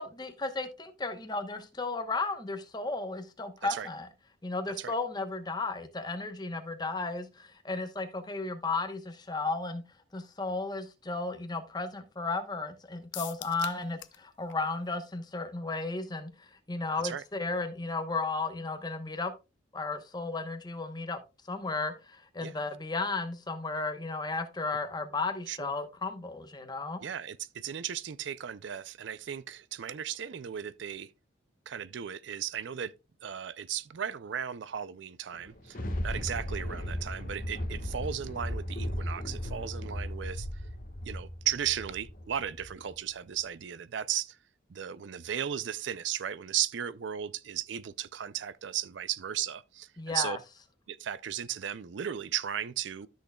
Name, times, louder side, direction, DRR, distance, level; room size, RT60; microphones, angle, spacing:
voice 1, 0.0-4.1 4.4-9.8 10.1-19.3 19.7-21.2 21.5-27.0 50.0-50.4, left 3 dB, 20° left, 1.0 m, -34 dB
sound 1, 13.1-14.2 14.5-14.6 14.9-15.0, left 14 dB, 65° left, 0.6 m, -42 dB
voice 2, 27.0-31.1 31.7-32.9 33.2-40.5 41.0-44.4 44.7-50.4 50.9-53.1, right 9 dB, 65° right, 0.4 m, -36 dB
Thunder, 35.3-42.9 43.4-43.5, equal, 45° left, 1.4 m, -36 dB
13.0 x 6.4 x 2.3 m
head